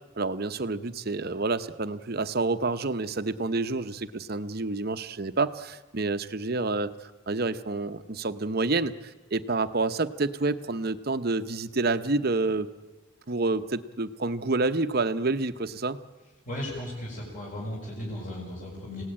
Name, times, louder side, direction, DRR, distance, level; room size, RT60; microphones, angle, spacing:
voice 1, 0.2-6.9 7.3-12.7 13.3-16.0, right 3 dB, 50° right, 11 dB, 0.9 m, -28 dB
voice 2, 16.5-19.0, left 1 dB, 40° left, -4 dB, 6.2 m, -36 dB
28.5 x 17.5 x 8.9 m, 1.2 s
head